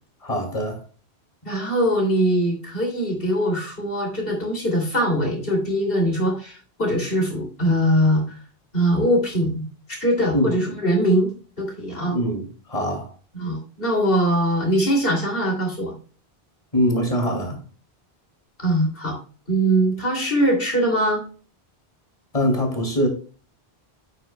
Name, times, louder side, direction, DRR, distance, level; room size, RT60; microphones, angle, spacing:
voice 1, 0.2-0.8 10.3-10.6 12.0-13.1 16.7-17.6 22.3-23.1, equal, 35° left, 2.7 m, -23 dB
voice 2, 1.4-8.4 8.7-9.6 9.9-12.1 13.3-15.9 18.6-19.2 19.5-21.2, equal, 60° left, 3.2 m, -22 dB
8.9 x 8.6 x 2.3 m
omnidirectional pair, 1.1 m